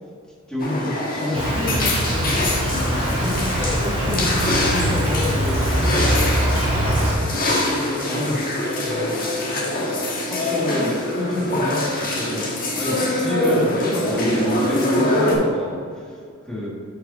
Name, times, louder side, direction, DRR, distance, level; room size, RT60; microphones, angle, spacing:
voice 1, 0.5-2.7 3.2-6.4 7.1-7.4 8.1-8.7 10.3-10.9 11.2-12.5 12.8-16.2 16.4-16.7, left 1 dB, 5° left, -5 dB, 1.6 m, -29 dB
sound 1, 0.6-15.3, left 1 dB, 40° left, 1.3 m, -24 dB
Insect, 1.3-7.1, right 1 dB, 25° right, 1.7 m, -22 dB
7.3 x 5.4 x 3.9 m, 2.2 s
head